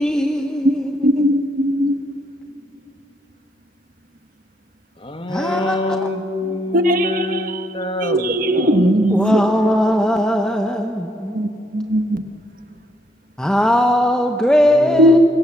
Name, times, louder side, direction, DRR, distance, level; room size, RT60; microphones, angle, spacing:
voice 1, 0.0-1.3 5.3-6.1 9.1-11.4 13.4-15.2, equal, 5° left, 4 dB, 0.9 m, -19 dB
voice 2, 1.0-1.9 6.7-7.6 8.0-9.4 11.3-12.2 15.0-15.2, equal, 50° right, 8 dB, 1.4 m, -17 dB
voice 3, 5.0-8.9 14.7-15.2, left 2 dB, 30° left, 6 dB, 1.5 m, -26 dB
27.0 x 24.5 x 7.4 m, 2.9 s
head